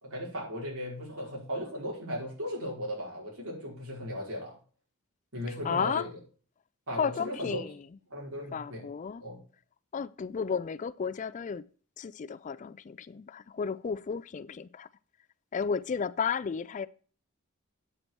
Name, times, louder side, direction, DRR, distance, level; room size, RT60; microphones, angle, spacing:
voice 1, 0.0-4.5 5.3-6.1 6.9-7.6 8.1-8.8 9.2-9.4, equal, 75° right, 4.9 m, -37 dB
voice 2, 5.6-6.1 7.0-7.8 8.5-9.2 9.9-11.7 12.0-14.9 15.5-16.9, left 6 dB, 35° left, 0.3 m, -33 dB
8.7 x 8.1 x 4.5 m
head